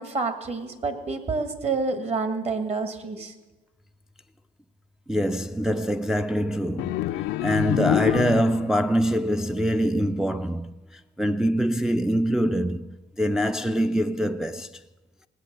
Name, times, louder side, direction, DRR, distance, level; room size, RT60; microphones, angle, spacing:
voice 1, 0.0-3.3, right 4 dB, 40° right, 1.6 m, -28 dB
voice 2, 5.1-14.8, equal, 5° right, 0.3 m, -24 dB
sound 1, 6.8-8.8, left 15 dB, 85° left, 0.4 m, -26 dB
18.0 x 8.3 x 6.6 m
cardioid pair, 110°, 17 cm